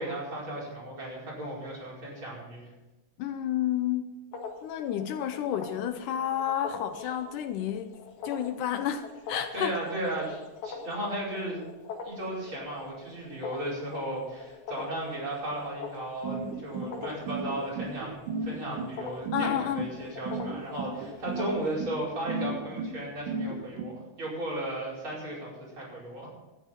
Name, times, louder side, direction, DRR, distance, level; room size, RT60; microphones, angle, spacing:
voice 1, 0.0-2.7 9.5-10.3 10.6-11.6 12.0-26.3, right 1 dB, 35° right, -6 dB, 5.7 m, -35 dB
voice 2, 3.2-4.2 4.6-7.9 8.2-9.8 19.3-19.9, left 10 dB, 80° left, 8 dB, 2.1 m, -30 dB
sound 1, 4.3-21.8, left 5 dB, 60° left, 2.7 m, -43 dB
sound 2, 16.2-23.9, right 3 dB, 70° right, 2.6 m, -34 dB
13.5 x 9.8 x 5.8 m, 1.0 s
omnidirectional pair, 3.9 m